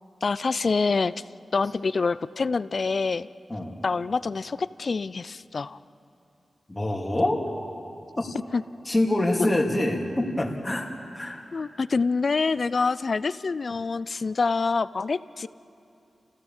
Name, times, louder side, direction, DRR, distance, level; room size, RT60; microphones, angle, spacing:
voice 1, 0.2-1.1 1.5-3.3 3.8-5.8 8.5-8.6 9.4-9.5 11.5-15.5, left 4 dB, 55° left, 16 dB, 0.5 m, -26 dB
voice 2, 3.5-3.8 6.7-7.4 8.2-8.3 8.9-11.5, left 1 dB, 20° left, 1 dB, 2.7 m, -26 dB
29.5 x 15.5 x 7.3 m, 2.7 s
wide cardioid pair, 85°, 0 cm